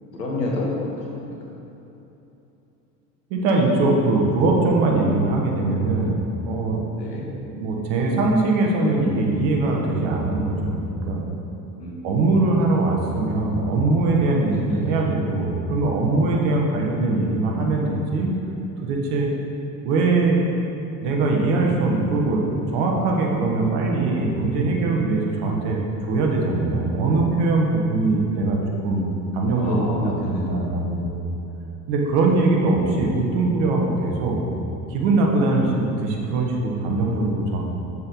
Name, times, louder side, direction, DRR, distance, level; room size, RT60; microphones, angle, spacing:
voice 1, 0.1-1.6 6.9-7.3 11.8-12.1 14.5-15.0 29.5-30.4 35.5-35.8, left 2 dB, 85° left, -3 dB, 1.6 m, -30 dB
voice 2, 3.3-6.8 7.1-11.2 12.0-18.3 18.8-19.3 19.8-20.4 21.0-22.4 22.7-25.8 26.1-29.0 29.3-31.3 31.9-34.4 34.9-37.6, right 2 dB, 60° right, 0 dB, 1.4 m, -21 dB
7.8 x 7.5 x 3.1 m, 3.0 s
hypercardioid pair, 70°, 48 cm